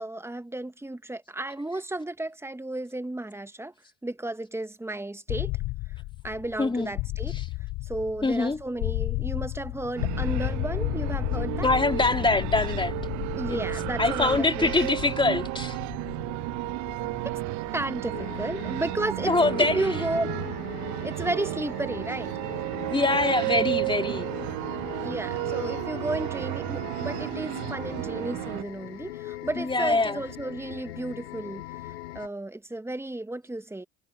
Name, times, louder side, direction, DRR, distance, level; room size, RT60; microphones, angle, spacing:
voice 1, 0.0-3.7 4.0-5.5 6.2-7.4 7.8-11.7 13.3-14.7 17.7-20.3 21.0-22.3 25.0-33.8, right 2 dB, 10° right, 1.9 m, -33 dB
sound 1, 5.3-21.1, left 21 dB, 55° left, 0.6 m, -33 dB
voice 2, 6.6-6.9 7.3-7.5 8.2-8.6 11.6-12.9 13.5-13.6 14.0-15.8 19.3-19.9 22.9-24.3 29.6-30.2, left 3 dB, 15° left, 2.5 m, -24 dB
sound 2, 10.0-28.6, right 25 dB, 65° right, 1.2 m, -32 dB
sound 3, 18.1-32.3, left 15 dB, 80° left, 5.9 m, -40 dB
hypercardioid pair, 60°, 32 cm